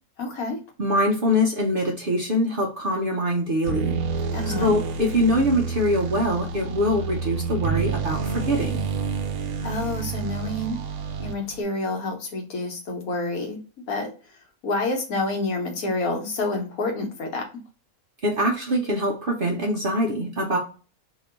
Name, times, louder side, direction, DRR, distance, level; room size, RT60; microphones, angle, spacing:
voice 1, 0.2-0.6 4.3-4.7 9.6-10.8 11.2-13.6 13.9-14.1 14.6-17.5, left 2 dB, 75° left, 3 dB, 1.4 m, -28 dB
voice 2, 0.8-4.0 4.6-8.9 18.2-20.6, equal, 50° right, 0 dB, 0.7 m, -23 dB
sound 1, 3.6-11.6, right 5 dB, 80° right, 1.1 m, -29 dB
2.9 x 2.6 x 4.3 m, 0.36 s
omnidirectional pair, 1.5 m